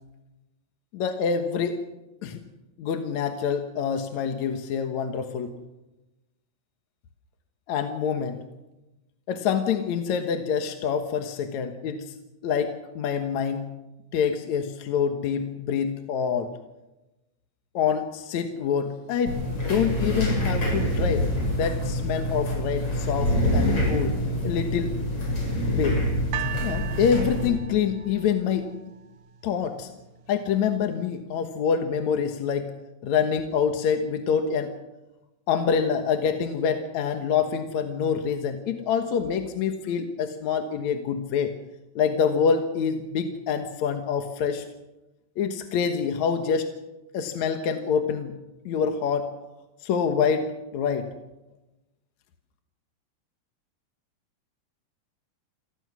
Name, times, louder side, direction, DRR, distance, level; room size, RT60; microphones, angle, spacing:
voice 1, 0.9-1.8 2.2-2.4 2.8-5.5 7.7-8.4 9.3-12.0 12.4-13.7 14.1-16.5 17.7-21.2 21.5-24.2 24.4-24.9 25.7-26.0 26.6-28.7 29.4-29.9 30.3-32.7 33.0-34.7 35.5-41.5 42.0-44.6 45.4-46.7 47.1-48.3 48.7-49.3 49.8-51.1, left 7 dB, 60° left, 6 dB, 2.3 m, -26 dB
sound 1, 19.3-27.5, equal, 40° left, 7.8 m, -26 dB
sound 2, 26.3-29.5 30.3-30.4, right 11 dB, 65° right, 2.4 m, -38 dB
28.5 x 19.0 x 6.2 m, 1.0 s
omnidirectional pair, 4.1 m